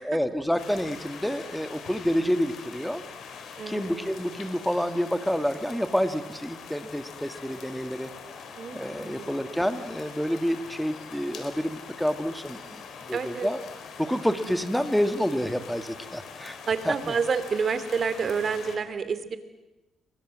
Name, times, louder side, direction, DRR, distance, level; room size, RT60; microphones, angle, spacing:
voice 1, 0.0-3.0 3.7-8.1 8.7-13.6 14.0-16.6 16.8-16.9, equal, ahead, 10 dB, 2.1 m, -28 dB
sound 1, 0.6-18.8, left 6 dB, 70° left, 4.3 m, -43 dB
voice 2, 3.6-3.9 8.6-9.4 13.1-13.5 14.1-14.2 16.7-19.4, right 5 dB, 45° right, 12 dB, 2.8 m, -29 dB
29.0 x 23.0 x 7.7 m, 1.1 s
cardioid pair, 90°, 0 cm